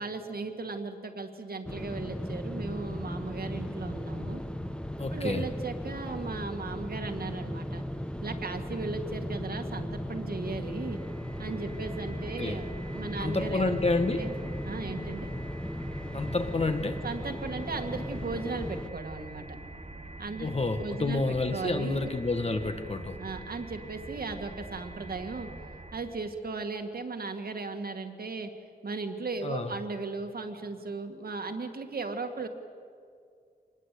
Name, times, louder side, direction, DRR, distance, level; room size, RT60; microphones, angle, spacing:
voice 1, 0.0-4.4 5.1-7.8 8.2-11.0 11.4-12.7 12.9-13.8 14.2-14.3 14.6-15.3 17.0-19.6 20.2-20.5 20.8-22.0 23.2-25.5 25.9-28.5 28.8-32.5, right 3 dB, 65° right, 6 dB, 2.0 m, -36 dB
sound 1, 1.7-18.9, left 1 dB, 5° left, 1.1 m, -37 dB
voice 2, 5.0-5.4 12.4-12.6 13.2-14.3 16.1-17.0 20.4-23.2 29.4-29.7, left 3 dB, 40° left, 7 dB, 1.6 m, -29 dB
sound 2, 10.2-26.4, right 2 dB, 40° right, 1.7 m, -45 dB
25.0 x 20.0 x 8.4 m, 2.3 s
wide cardioid pair, 115°, 17 cm